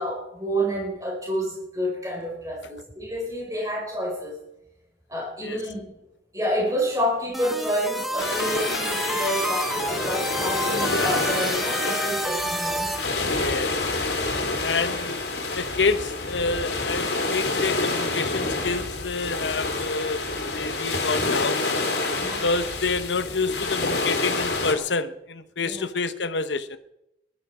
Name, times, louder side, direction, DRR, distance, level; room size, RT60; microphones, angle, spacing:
voice 1, 0.0-4.4 5.1-5.8 6.3-13.0 22.2-22.4 25.6-25.9, equal, 20° right, -2 dB, 5.4 m, -29 dB
sound 1, 7.3-13.1, equal, ahead, 0.9 m, -29 dB
sound 2, 8.2-24.7, left 2 dB, 70° left, 2.6 m, -28 dB
voice 2, 13.4-13.7 14.6-15.3 15.5-20.2 20.5-21.7 22.2-26.8, left 4 dB, 85° left, 12 dB, 1.0 m, -28 dB
19.5 x 12.0 x 5.0 m, 0.86 s
head